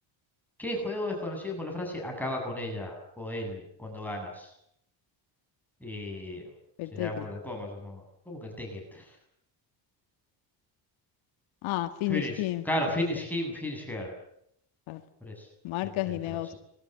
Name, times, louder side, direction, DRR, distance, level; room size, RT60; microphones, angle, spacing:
voice 1, 0.6-4.5 5.8-6.4 6.9-9.2 12.1-14.1 15.2-15.5 16.3-16.4, left 1 dB, 5° left, 7.9 m, -34 dB
voice 2, 6.8-7.3 11.6-13.0 14.9-15.0 15.6-16.5, left 16 dB, 85° left, 2.0 m, -32 dB
26.0 x 22.0 x 7.9 m
cardioid pair, 115°, 46 cm